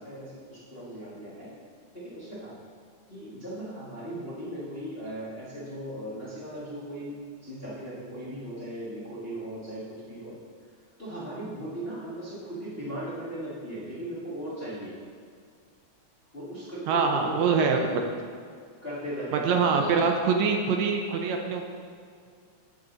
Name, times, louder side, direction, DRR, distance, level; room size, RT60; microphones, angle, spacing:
voice 1, 0.0-1.5 1.9-2.5 3.1-7.2 7.4-10.4 11.0-15.0 16.3-17.5 18.8-20.1, right 1 dB, 25° left, -9 dB, 1.3 m, -38 dB
voice 2, 16.9-18.0 19.3-21.6, right 5 dB, 75° right, 3 dB, 1.9 m, -24 dB
14.5 x 5.3 x 3.9 m, 2.2 s
omnidirectional pair, 3.4 m